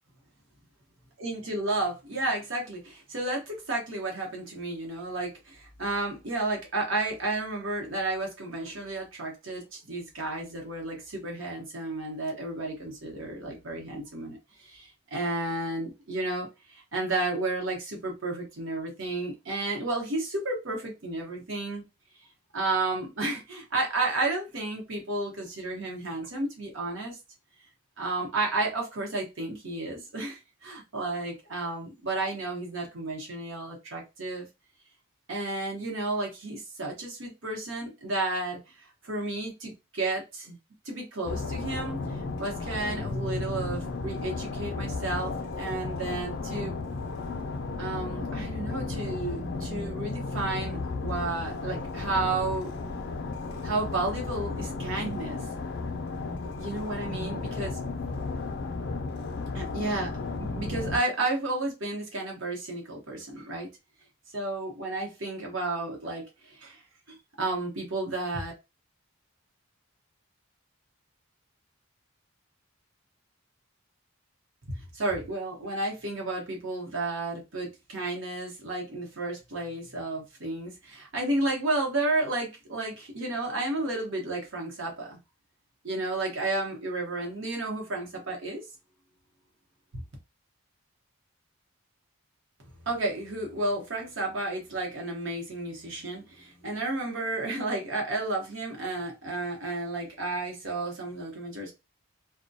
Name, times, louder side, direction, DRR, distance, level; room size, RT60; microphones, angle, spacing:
voice 1, 1.2-21.8 22.5-27.2 28.0-34.5 35.3-38.6 39.0-40.6 40.9-45.3 45.6-46.7 47.8-52.7 53.6-55.4 56.6-57.8 59.5-60.1 60.4-63.7 64.3-66.8 67.1-68.5 74.7-85.2 85.8-88.6 92.8-101.7, right 2 dB, 60° right, 0 dB, 0.9 m, -32 dB
sound 1, 41.2-61.0, left 3 dB, 50° left, 0.4 m, -34 dB
2.2 x 2.2 x 2.6 m, 0.25 s
head